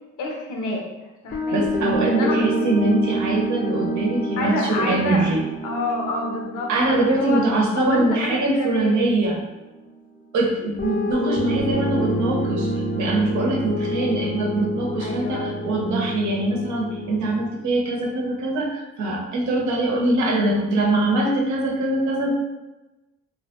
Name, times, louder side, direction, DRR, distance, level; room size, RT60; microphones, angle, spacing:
voice 1, 0.2-0.8 1.2-1.7 2.1-2.5 4.4-5.2 5.6-7.4 7.7-9.1 15.0-15.5, left 2 dB, 80° left, 1 dB, 0.6 m, -28 dB
sound 1, 1.3-9.4 10.8-17.4, right 1 dB, 30° left, 0.4 m, -27 dB
voice 2, 1.5-5.4 6.7-9.4 10.3-22.3, right 2 dB, 70° right, -1 dB, 0.7 m, -23 dB
2.3 x 2.1 x 2.8 m, 1.1 s
cardioid pair, 90°, 30 cm